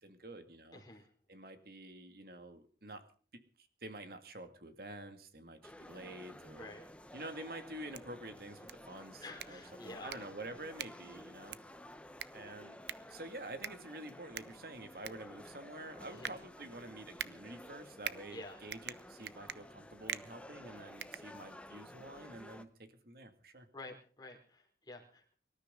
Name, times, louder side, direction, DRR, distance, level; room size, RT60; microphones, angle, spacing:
voice 1, 0.0-0.8 1.3-3.1 3.6-6.7 7.1-11.6 12.3-12.8 13.1-23.7, right 1 dB, 55° right, 8 dB, 2.3 m, -48 dB
voice 2, 0.7-1.1 6.6-6.8 9.2-10.2 16.1-16.3 18.3-18.6 23.7-25.3, left 2 dB, 25° left, 0 dB, 4.3 m, -49 dB
sound 1, 5.6-22.6, left 1 dB, 5° left, 0.9 m, -53 dB
sound 2, 7.7-21.8, right 8 dB, 75° right, 0.8 m, -47 dB
25.0 x 13.5 x 3.8 m, 0.41 s
head